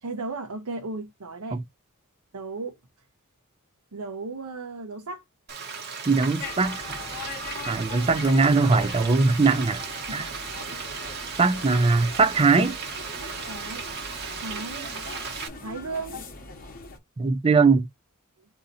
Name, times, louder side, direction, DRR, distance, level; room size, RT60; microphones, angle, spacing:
voice 1, 0.0-1.6 2.3-2.8 3.9-5.2 10.1-10.2 10.5-10.8 13.2-13.9 14.4-14.9 15.6-16.2, right 3 dB, 80° right, 0.8 m, -35 dB
Frying (food), 5.5-15.5, right 5 dB, 50° right, 0.9 m, -36 dB
voice 2, 6.1-6.8 7.7-9.8 10.1-10.2 11.4-12.8 17.2-17.9, right 4 dB, 25° right, 0.4 m, -20 dB
sound 1, 6.4-17.0, left 4 dB, 40° left, 0.9 m, -41 dB
3.9 x 2.8 x 4.0 m
head